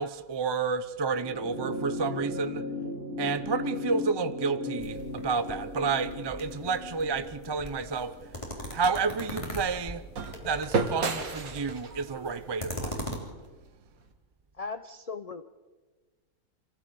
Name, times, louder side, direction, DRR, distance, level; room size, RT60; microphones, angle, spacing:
voice 1, 0.0-2.7 3.2-8.2 8.7-10.0 10.4-12.9, right 5 dB, 25° right, 0.5 m, -30 dB
sound 1, 1.1-9.8 11.0-11.1, left 2 dB, 65° left, 4.5 m, -37 dB
sound 2, 4.8-13.2, equal, 20° left, 3.4 m, -41 dB
sound 3, 7.9-14.1, right 4 dB, 70° right, 2.0 m, -35 dB
voice 2, 14.5-15.5, left 4 dB, 45° left, 0.5 m, -38 dB
26.0 x 15.0 x 7.0 m
omnidirectional pair, 1.5 m